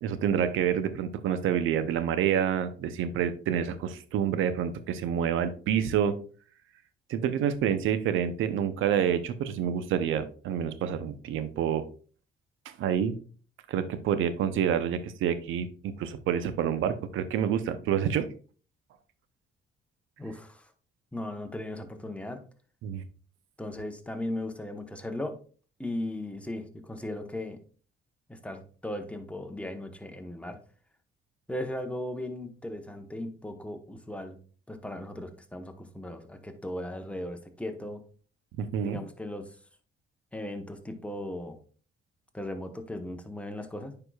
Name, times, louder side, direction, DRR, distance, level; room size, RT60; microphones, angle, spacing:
voice 1, 0.0-6.2 7.1-11.8 12.8-13.1 13.7-18.3 22.8-23.0 38.6-39.0, right 8 dB, 85° right, 12 dB, 0.7 m, -28 dB
voice 2, 20.2-20.7 21.1-22.4 23.6-25.4 25.8-27.6 28.3-30.6 31.5-34.4 34.7-38.0 38.8-39.6 40.3-41.6 42.3-43.9, left 1 dB, 5° left, 5 dB, 1.0 m, -37 dB
9.5 x 4.9 x 2.3 m, 0.41 s
cardioid pair, 90°, 20 cm